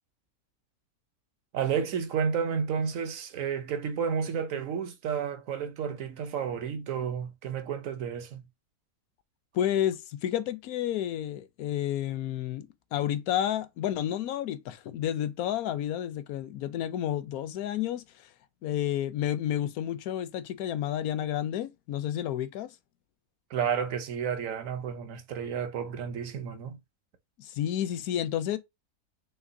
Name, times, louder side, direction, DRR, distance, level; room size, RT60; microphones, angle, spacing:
voice 1, 1.5-8.4 23.5-26.8, right 7 dB, 65° right, 1.0 m, -31 dB
voice 2, 9.5-18.3 18.6-22.8 27.4-28.6, left 11 dB, 75° left, 1.0 m, -31 dB
5.8 x 3.0 x 2.6 m
omnidirectional pair, 1.6 m